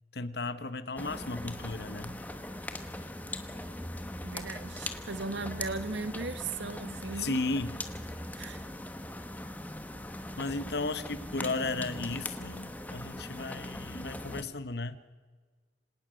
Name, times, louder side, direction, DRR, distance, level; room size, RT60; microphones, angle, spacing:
voice 1, 0.1-2.2 7.2-7.8 10.4-15.0, left 3 dB, 60° left, 14 dB, 1.0 m, -35 dB
sound 1, 1.0-14.4, left 1 dB, 10° left, 1.1 m, -40 dB
voice 2, 4.2-7.4 8.4-8.7, right 3 dB, 75° right, 12 dB, 1.3 m, -37 dB
26.5 x 18.0 x 6.3 m, 1.4 s
head